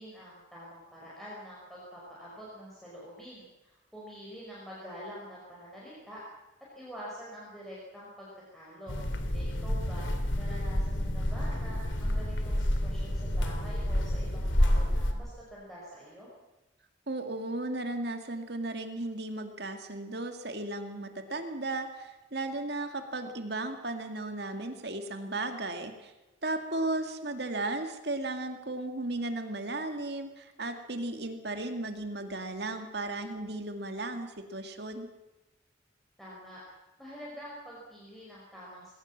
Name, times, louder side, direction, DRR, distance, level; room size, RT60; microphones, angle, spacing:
voice 1, 0.0-6.2 6.7-9.0 9.3-10.1 10.3-16.3 36.2-36.6 37.0-38.9, equal, ahead, -6 dB, 5.2 m, -46 dB
sound 1, 8.9-15.1, equal, 80° left, 2.7 m, -29 dB
voice 2, 17.1-26.1 26.4-35.1, right 2 dB, 55° right, 6 dB, 2.2 m, -35 dB
20.5 x 18.0 x 7.4 m, 1.1 s
head